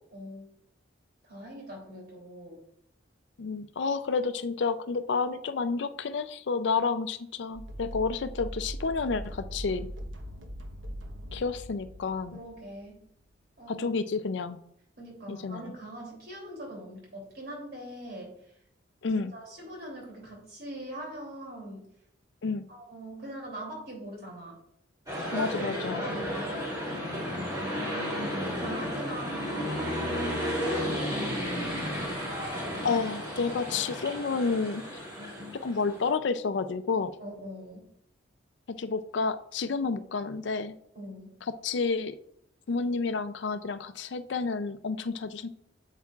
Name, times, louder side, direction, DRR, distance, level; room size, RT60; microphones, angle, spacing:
voice 1, 0.1-0.5 1.2-2.6 12.3-13.0 13.6-13.9 15.0-18.3 19.1-21.8 22.7-24.6 25.9-26.6 27.6-28.2 28.5-31.3 37.2-37.9 40.9-41.3, right 1 dB, 55° right, -2 dB, 3.0 m, -42 dB
voice 2, 3.4-9.9 11.3-12.4 13.7-14.6 15.3-15.6 19.0-19.3 22.4-22.7 25.3-26.0 32.8-34.8 35.6-37.1 38.8-40.8 41.6-42.1 42.7-45.5, left 4 dB, 70° left, 11 dB, 0.4 m, -30 dB
sound 1, 7.5-13.3, equal, 90° right, 1.0 m, -41 dB
sound 2, 25.1-36.1, equal, 20° right, 2.6 m, -33 dB
8.3 x 7.4 x 2.4 m, 0.70 s
head